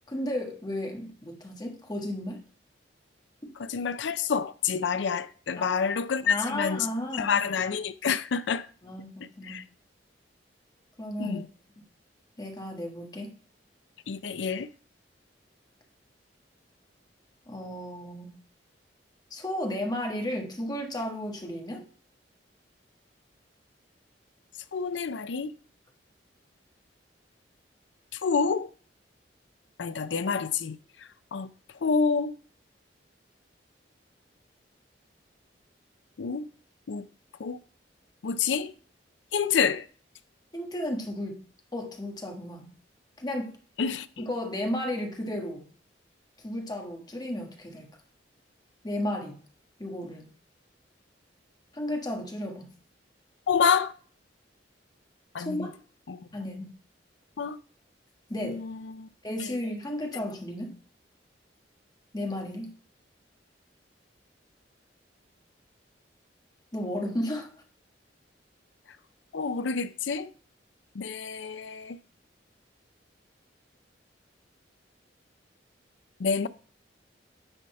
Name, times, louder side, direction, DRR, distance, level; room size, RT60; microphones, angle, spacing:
voice 1, 0.1-2.4 5.6-5.8 6.2-7.4 8.8-9.6 11.0-11.5 12.4-13.3 17.5-18.4 19.3-21.8 40.5-41.4 41.7-42.7 43.2-43.5 44.2-45.7 46.4-47.9 48.8-49.4 49.8-50.3 51.7-52.7 55.4-55.7 56.3-56.7 58.3-58.6 59.2-60.7 62.1-62.7 66.7-67.5, left 1 dB, 25° left, 1.5 m, -33 dB
voice 2, 3.6-6.9 7.1-8.7 9.5-9.6 11.2-11.5 14.1-14.7 24.7-25.5 28.2-28.7 29.8-30.8 31.3-31.5 31.8-32.3 36.2-36.5 36.9-37.1 37.4-37.6 38.2-38.7 39.3-39.8 43.8-44.1 53.5-53.9 55.3-55.7 56.1-56.2 57.4-57.6 58.4-59.1 69.3-70.3 71.0-72.0 76.2-76.5, left 6 dB, 85° left, 0.5 m, -28 dB
9.9 x 4.2 x 4.3 m
head